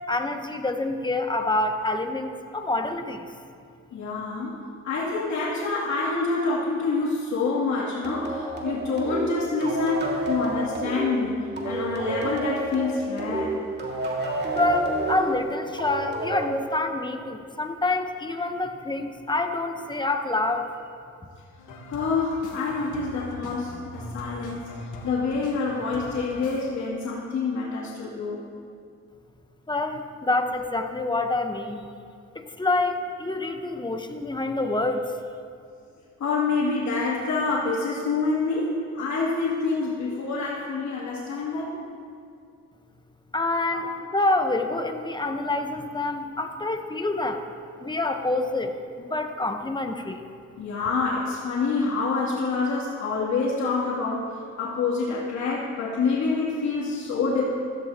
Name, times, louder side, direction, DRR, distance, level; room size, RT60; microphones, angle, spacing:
voice 1, 0.1-3.3 14.2-20.7 29.7-31.8 32.3-35.1 43.3-47.4 47.8-50.2, left 2 dB, 15° left, 5 dB, 1.1 m, -27 dB
voice 2, 3.9-11.4 11.6-13.5 21.9-28.4 36.2-41.8 43.7-43.8 50.6-57.4, left 4 dB, 70° left, -7 dB, 3.0 m, -27 dB
sound 1, 8.0-17.3, right 2 dB, 35° right, 2.4 m, -30 dB
sound 2, 21.6-26.6, left 1 dB, 85° left, 1.6 m, -40 dB
15.5 x 15.5 x 3.0 m, 2.4 s
cardioid pair, 90°, 30 cm